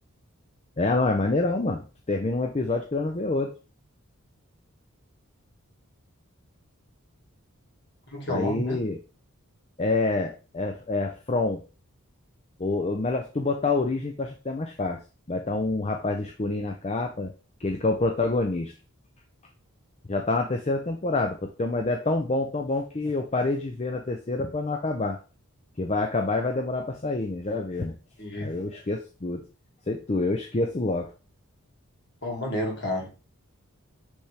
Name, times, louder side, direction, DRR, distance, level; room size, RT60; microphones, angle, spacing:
voice 1, 0.8-3.5 8.3-9.0 9.8-11.6 12.6-15.0 15.3-17.3 17.6-18.7 20.1-25.2 25.8-27.9 28.4-29.4 29.9-31.1, left 2 dB, 30° left, 3 dB, 0.5 m, -27 dB
voice 2, 8.1-8.8 28.2-28.5 32.2-33.1, left 1 dB, 50° left, 0 dB, 2.1 m, -30 dB
8.0 x 3.5 x 3.4 m, 0.33 s
head